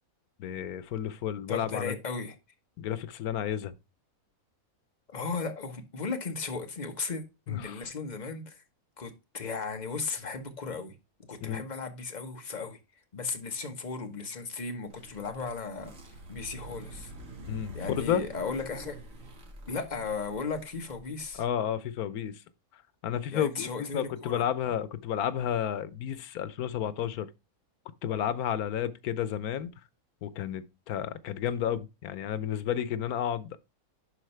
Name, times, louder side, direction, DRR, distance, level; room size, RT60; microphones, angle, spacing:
voice 1, 0.4-2.0 2.8-3.7 7.5-7.8 11.4-11.6 17.5-18.2 21.4-22.4 23.0-27.3 28.0-29.7 30.2-33.6, left 9 dB, 90° left, 1.2 m, -31 dB
voice 2, 1.5-2.4 5.1-8.6 9.0-10.9 11.3-12.8 13.1-15.9 16.3-17.1 17.7-19.0 19.7-21.4 23.3-24.4, left 4 dB, 30° left, 1.2 m, -36 dB
sound 1, 14.9-21.4, right 1 dB, 65° right, 2.0 m, -46 dB
11.0 x 4.2 x 3.2 m
omnidirectional pair, 1.5 m